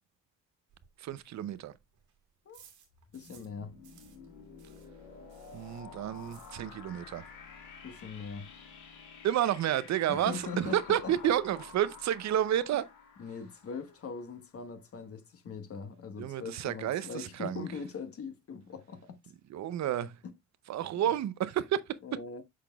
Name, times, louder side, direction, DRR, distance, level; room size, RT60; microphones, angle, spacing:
sound 1, 0.7-3.6 3.8-7.0 7.3-7.4 7.7-7.8 8.0-8.5, right 8 dB, 80° right, 2.4 m, -61 dB
voice 1, 1.0-1.7 5.5-7.3 9.2-12.9 16.2-17.7 19.5-20.2 20.7-22.0, right 11 dB, 65° right, 0.6 m, -30 dB
sound 2, 2.9-14.6, left 5 dB, 85° left, 2.1 m, -51 dB
voice 2, 3.1-3.8 7.8-8.5 10.1-11.1 13.2-19.2 20.2-20.3 21.0-21.2 22.0-22.4, left 5 dB, 50° left, 1.4 m, -41 dB
8.4 x 5.8 x 2.3 m
cardioid pair, 90°, 30 cm